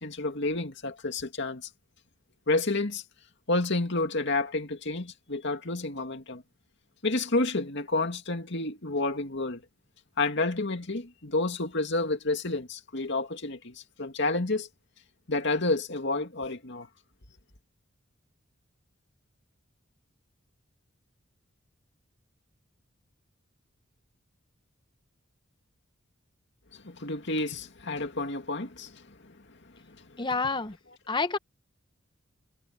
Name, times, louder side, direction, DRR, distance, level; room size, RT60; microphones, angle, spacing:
voice 1, 0.0-1.6 2.5-3.0 3.5-6.4 7.0-9.6 10.2-14.7 15.3-16.9 26.7-29.3, left 2 dB, 60° left, 2.4 m, -30 dB
voice 2, 30.2-30.8 31.1-31.4, left 4 dB, 25° left, 1.0 m, -28 dB
head